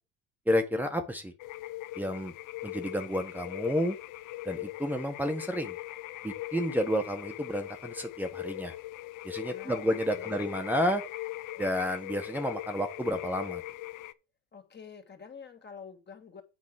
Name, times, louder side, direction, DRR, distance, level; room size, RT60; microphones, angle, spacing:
voice 1, 0.5-1.3 2.0-2.3 2.6-4.0 4.4-5.7 6.2-8.7 9.2-11.0 11.6-13.6, equal, 5° right, 5 dB, 1.5 m, -30 dB
sound 1, 1.4-14.1, left 17 dB, 65° left, 0.9 m, -41 dB
voice 2, 9.5-10.5 14.5-16.4, left 6 dB, 30° left, 5 dB, 2.8 m, -48 dB
8.6 x 5.2 x 6.5 m, 0.30 s
supercardioid pair, 90°, 33 cm